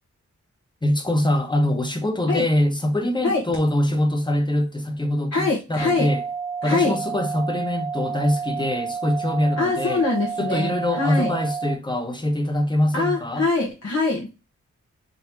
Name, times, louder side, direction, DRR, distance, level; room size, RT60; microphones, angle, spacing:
voice 1, 0.8-6.2 6.6-10.0 10.4-13.5, left 1 dB, 15° left, 1.0 m, -23 dB
voice 2, 5.3-6.1 6.6-7.0 9.6-11.3 12.9-14.3, left 3 dB, 55° left, 1.1 m, -23 dB
sound 1, 5.8-11.8, right 6 dB, 10° right, 0.8 m, -30 dB
4.0 x 3.5 x 2.7 m
cardioid pair, 45°, 30 cm